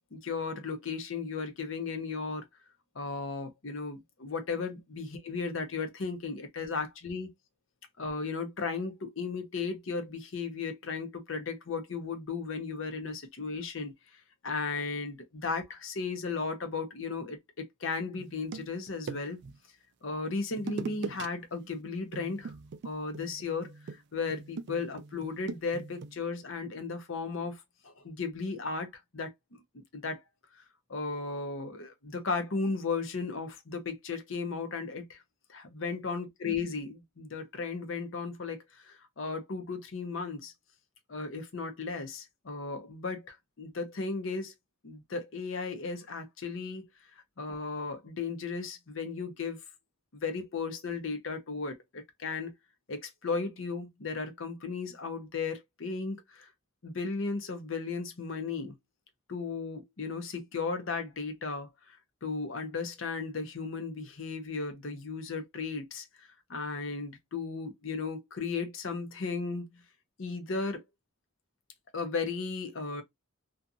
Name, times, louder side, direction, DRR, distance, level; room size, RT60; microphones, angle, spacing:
voice 1, 0.1-2.5 3.0-7.3 8.0-13.9 14.4-19.4 20.0-22.5 22.8-23.7 24.1-28.9 29.1-30.2 30.9-35.2 35.5-40.5 41.1-44.5 44.8-46.8 47.4-49.6 50.1-52.5 52.9-56.5 56.8-58.7 59.3-69.8 70.2-70.8 71.9-73.0, left 4 dB, 70° left, 0.8 m, -35 dB
sound 1, 18.2-19.6 20.6-21.3 21.6-21.8 22.1-26.2, right 5 dB, 55° right, 0.4 m, -41 dB
2.7 x 2.4 x 2.4 m
head